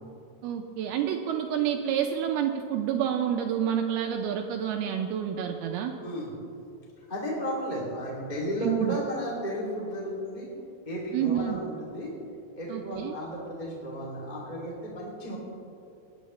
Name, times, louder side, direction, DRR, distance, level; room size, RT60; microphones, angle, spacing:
voice 1, 0.4-6.0 8.6-9.0 11.1-11.6 12.7-13.2, right 9 dB, 80° right, 4 dB, 2.3 m, -28 dB
voice 2, 7.0-10.5 10.8-12.1 12.6-15.4, equal, 15° left, -5 dB, 1.6 m, -33 dB
19.5 x 10.5 x 3.2 m, 2.6 s
omnidirectional pair, 4.8 m